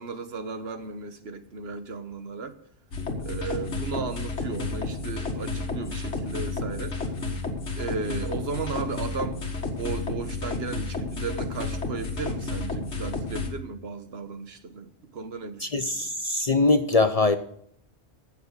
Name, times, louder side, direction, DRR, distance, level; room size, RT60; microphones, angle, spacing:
voice 1, 0.0-2.6 3.2-7.1 7.8-9.4 9.8-16.1, right 5 dB, 65° right, 1.3 m, -35 dB
sound 1, 2.9-13.5, left 3 dB, 75° left, 2.1 m, -31 dB
voice 2, 15.6-17.4, left 3 dB, 40° left, 0.7 m, -22 dB
15.5 x 6.7 x 6.5 m
omnidirectional pair, 1.2 m